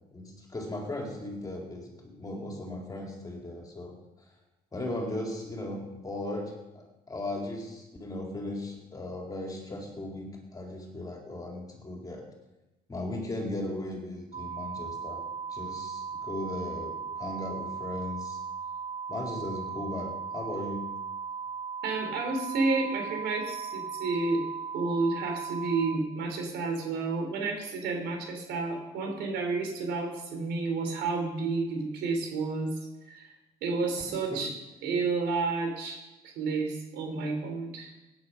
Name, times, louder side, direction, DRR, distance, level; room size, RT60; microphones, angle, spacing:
voice 1, 0.1-3.9 4.7-12.2 12.9-15.2 15.5-18.4 19.1-20.8 34.1-34.4, left 1 dB, 20° left, 0 dB, 4.1 m, -37 dB
sound 1, 14.3-26.0, right 6 dB, 40° right, 1.2 m, -37 dB
voice 2, 21.8-24.4 24.7-32.7 33.1-33.3 33.6-34.5 34.8-36.0 36.2-37.9, right 3 dB, 80° right, 3 dB, 3.8 m, -30 dB
16.5 x 9.8 x 5.8 m, 1.0 s
cardioid pair, 110°, 17 cm